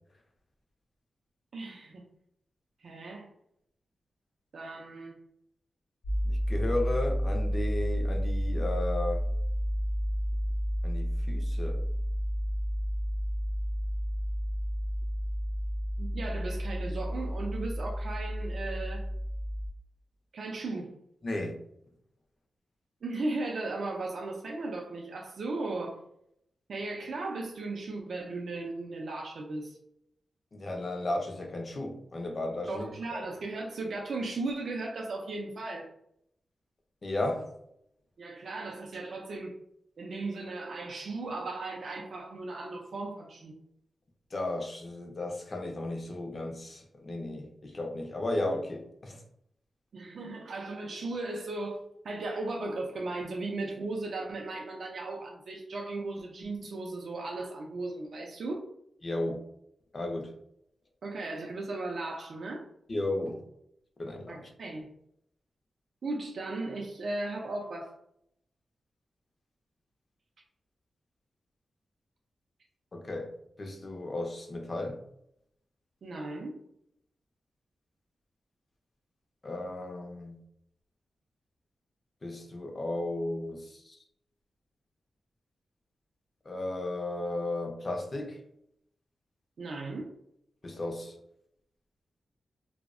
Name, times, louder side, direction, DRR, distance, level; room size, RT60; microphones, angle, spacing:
voice 1, 1.5-2.1 2.8-3.3 4.5-5.2 16.0-19.1 20.3-20.9 23.0-26.0 26.7-29.8 32.7-35.9 38.2-39.6 40.0-43.6 49.9-58.7 61.0-62.7 64.3-64.9 66.0-67.9 76.0-76.6 89.6-90.1, right 2 dB, 65° right, 0.3 m, -36 dB
sound 1, 6.0-19.7, equal, 85° left, 0.7 m, -31 dB
voice 2, 6.2-9.2 10.8-11.8 21.2-21.6 30.5-33.2 37.0-37.5 44.3-49.2 59.0-59.4 59.9-60.3 62.9-63.4 64.0-64.5 72.9-73.3 73.6-75.0 79.4-80.4 82.2-84.0 86.5-88.4 90.6-91.1, left 2 dB, 35° left, 0.4 m, -34 dB
2.6 x 2.0 x 2.4 m
wide cardioid pair, 130°, 0 cm